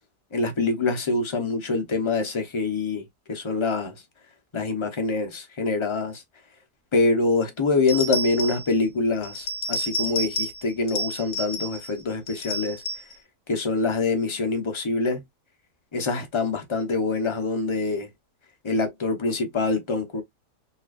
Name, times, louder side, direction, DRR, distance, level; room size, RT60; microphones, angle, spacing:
voice 1, 0.3-3.0 3.3-3.9 4.5-6.2 6.9-12.8 13.5-15.2 15.9-18.1 18.6-20.2, left 3 dB, 30° left, 0.6 m, -25 dB
sound 1, 7.9-8.7 9.2-10.6 10.9-11.9 12.3-13.1, equal, 70° left, 1.4 m, -30 dB
4.1 x 3.0 x 2.4 m
omnidirectional pair, 1.7 m